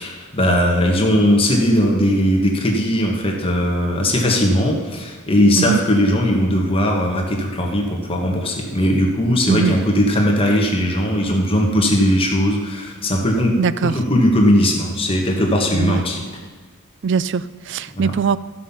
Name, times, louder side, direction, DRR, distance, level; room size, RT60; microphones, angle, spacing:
voice 1, 0.0-16.2 18.0-18.1, equal, 25° left, 0 dB, 1.5 m, -18 dB
voice 2, 13.6-14.0 15.7-16.0 17.0-18.4, right 6 dB, 55° right, 17 dB, 0.4 m, -21 dB
14.0 x 5.8 x 7.0 m, 1.4 s
head